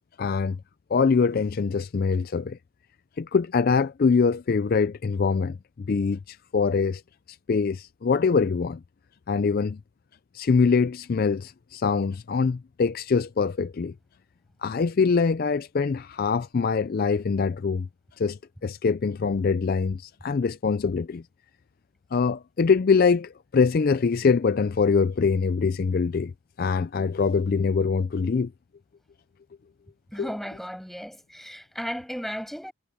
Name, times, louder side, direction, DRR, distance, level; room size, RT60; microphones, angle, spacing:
voice 1, 0.2-0.6 0.9-2.6 3.2-7.0 7.5-8.8 9.3-9.8 10.3-13.9 14.6-17.9 18.2-21.2 22.1-26.3 26.6-28.5 30.2-30.3, left 5 dB, 45° left, 0.4 m, -23 dB
voice 2, 30.1-32.7, equal, ahead, 6.9 m, -35 dB
head